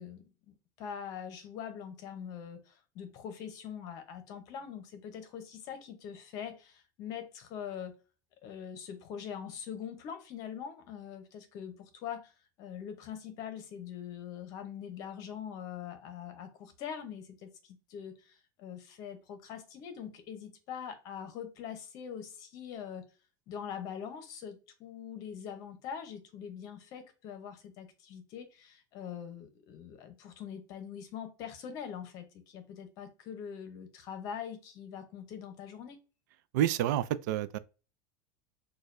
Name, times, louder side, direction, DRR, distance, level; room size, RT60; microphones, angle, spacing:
voice 1, 0.0-8.0 8.4-12.3 12.6-23.1 23.5-36.0, left 8 dB, 40° left, 0.8 m, -43 dB
voice 2, 36.5-37.6, right 12 dB, 75° right, 0.4 m, -28 dB
6.3 x 2.3 x 2.6 m
supercardioid pair, 170°, 10 cm